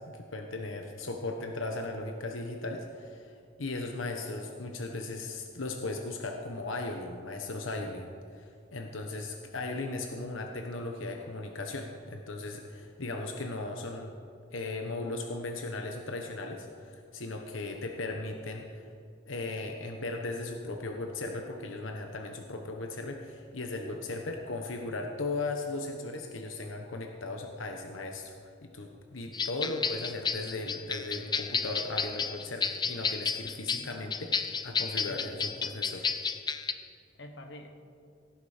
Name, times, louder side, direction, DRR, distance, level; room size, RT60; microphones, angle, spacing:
voice 1, 0.0-3.3 3.6-14.1 14.5-18.9 19.3-28.3 28.6-36.1, left 2 dB, 85° left, 3 dB, 1.1 m, -37 dB
sound 1, 29.3-36.7, left 6 dB, 20° left, 0.5 m, -32 dB
voice 2, 33.7-34.4 35.1-35.5 37.1-37.7, left 1 dB, 65° left, 5 dB, 1.4 m, -49 dB
17.5 x 10.5 x 5.1 m, 2.3 s
head